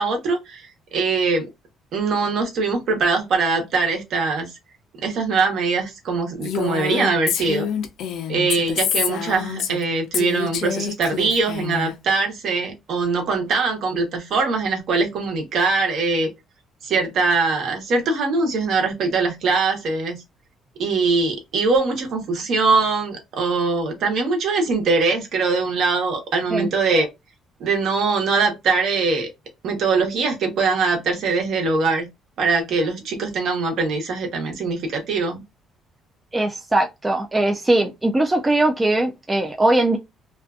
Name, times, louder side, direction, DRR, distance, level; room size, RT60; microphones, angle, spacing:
voice 1, 0.0-1.5 1.9-4.5 5.0-7.7 8.3-16.3 16.8-20.2 20.8-27.1 27.6-29.3 29.6-32.1 32.4-35.4, right 4 dB, 60° right, 1.0 m, -22 dB
Female speech woman speaking, 6.4-9.8 10.1-11.9, left 8 dB, 70° left, 0.5 m, -27 dB
voice 2, 36.3-40.0, right 2 dB, 15° right, 0.3 m, -20 dB
2.5 x 2.4 x 2.3 m
cardioid pair, 125°, 0 cm